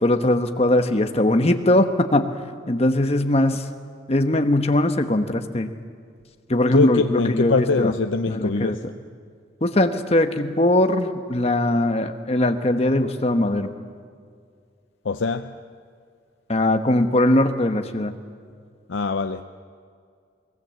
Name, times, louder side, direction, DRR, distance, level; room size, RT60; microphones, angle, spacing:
voice 1, 0.0-2.3 2.7-3.6 4.1-5.7 6.5-7.9 8.3-8.8 9.6-13.7 16.5-18.1, left 1 dB, 35° left, 1.2 m, -20 dB
voice 2, 6.7-8.8 15.1-15.5 18.9-19.4, left 4 dB, 90° left, 0.6 m, -23 dB
23.0 x 19.5 x 7.7 m
head